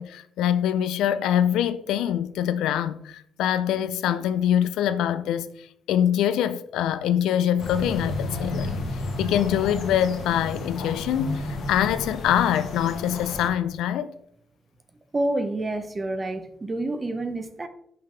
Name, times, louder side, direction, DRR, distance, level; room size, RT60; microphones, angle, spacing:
voice 1, 0.0-8.7 9.2-14.1, left 10 dB, 90° left, 0.4 m, -24 dB
sound 1, 7.6-13.5, left 2 dB, 70° left, 1.3 m, -32 dB
voice 2, 15.1-17.7, right 2 dB, 25° right, 0.7 m, -28 dB
5.7 x 5.4 x 3.3 m
cardioid pair, 90°, 0 cm